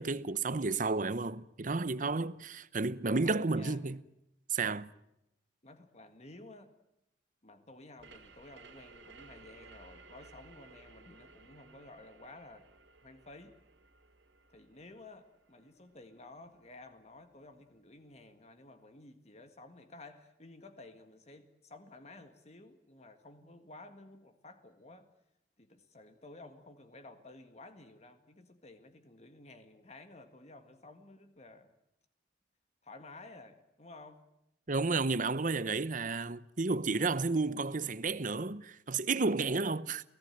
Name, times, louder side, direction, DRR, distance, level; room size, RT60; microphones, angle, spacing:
voice 1, 0.0-4.0 4.5-4.9 34.7-40.0, right 3 dB, 45° right, 0.9 m, -32 dB
voice 2, 3.0-3.8 5.6-6.7 7.4-12.7 13.0-13.6 14.5-25.1 25.6-31.7 32.8-34.2, left 2 dB, 35° left, 1.8 m, -53 dB
sound 1, 8.0-17.4, right 3 dB, 85° right, 2.8 m, -58 dB
29.5 x 17.0 x 9.2 m
head